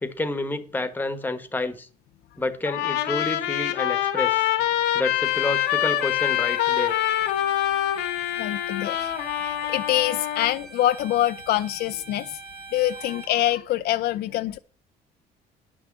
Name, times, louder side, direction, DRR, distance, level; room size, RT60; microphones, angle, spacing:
voice 1, 0.0-1.9 2.4-4.5 4.9-6.9, left 2 dB, 10° left, 1.2 m, -29 dB
Trumpet, 2.7-10.6, left 13 dB, 90° left, 1.5 m, -25 dB
Bowed string instrument, 5.2-13.3, right 3 dB, 70° right, 2.4 m, -43 dB
voice 2, 8.4-12.4 12.7-14.6, left 13 dB, 70° left, 0.5 m, -25 dB
10.0 x 6.2 x 7.3 m
cardioid pair, 110°, 17 cm